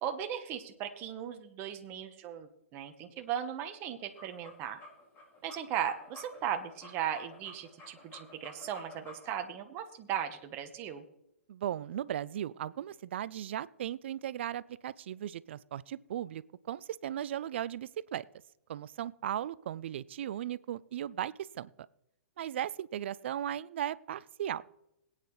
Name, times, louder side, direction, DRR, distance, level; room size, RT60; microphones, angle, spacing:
voice 1, 0.0-4.8 5.4-11.0, right 9 dB, 35° right, 6 dB, 1.1 m, -37 dB
sound 1, 4.0-9.5, left 3 dB, 25° left, 5.0 m, -52 dB
voice 2, 11.5-16.4 16.7-18.2 18.7-21.7 22.4-24.6, right 11 dB, 60° right, 20 dB, 0.5 m, -37 dB
21.5 x 9.1 x 3.2 m, 0.85 s
figure-of-eight pair, 120°, 7 cm